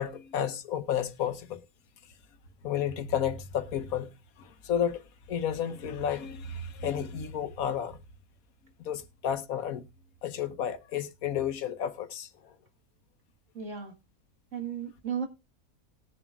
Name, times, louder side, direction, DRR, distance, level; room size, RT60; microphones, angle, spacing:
voice 1, 0.0-1.6 2.6-5.0 5.3-8.0 8.8-9.8 10.2-12.6, left 9 dB, 90° left, 1.4 m, -32 dB
voice 2, 13.5-13.9 14.5-15.3, right 7 dB, 60° right, 2.2 m, -34 dB
19.5 x 7.0 x 2.4 m
omnidirectional pair, 1.5 m